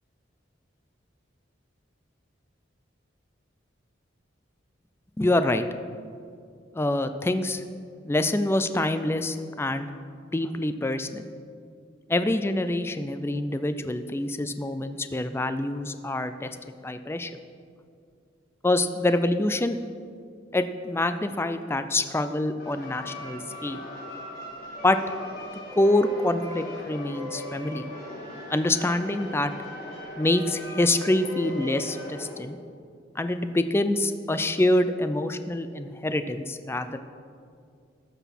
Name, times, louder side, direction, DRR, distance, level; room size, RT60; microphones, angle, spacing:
voice 1, 5.2-5.6 6.8-7.6 8.1-9.9 10.3-11.3 12.1-16.5 16.8-17.3 18.6-19.8 20.5-23.8 24.8-25.0 25.8-27.8 28.5-29.5 30.2-32.6 33.2-37.0, left 1 dB, 10° left, 10 dB, 0.4 m, -26 dB
sound 1, 22.6-32.3, left 1 dB, 50° left, 3.0 m, -39 dB
13.5 x 6.0 x 5.9 m, 2.3 s
head